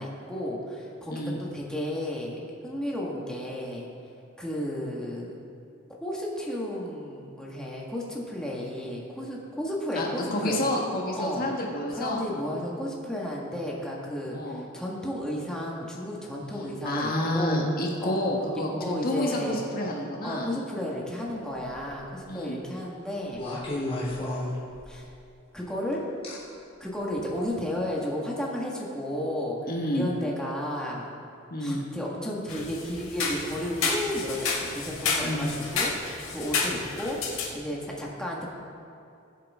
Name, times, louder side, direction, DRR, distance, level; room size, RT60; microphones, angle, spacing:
voice 1, 0.0-3.9 4.4-5.4 6.0-10.6 11.2-11.4 11.9-17.6 18.0-18.2 18.8-19.7 20.2-23.4 24.9-25.1 25.5-26.0 26.8-31.1 31.6-38.5, equal, 5° left, -4 dB, 1.8 m, -33 dB
voice 2, 10.0-12.2 14.3-14.7 16.8-20.5 22.2-22.6 29.7-30.1 31.5-31.8 35.2-35.5, left 1 dB, 45° left, -1 dB, 1.5 m, -29 dB
sound 1, 21.5-22.0 23.3-25.1 26.2-26.4 27.2-27.4, left 1 dB, 30° left, 3.3 m, -33 dB
sound 2, 32.5-37.5, left 4 dB, 75° left, 2.1 m, -30 dB
20.5 x 8.2 x 3.7 m, 2.6 s
head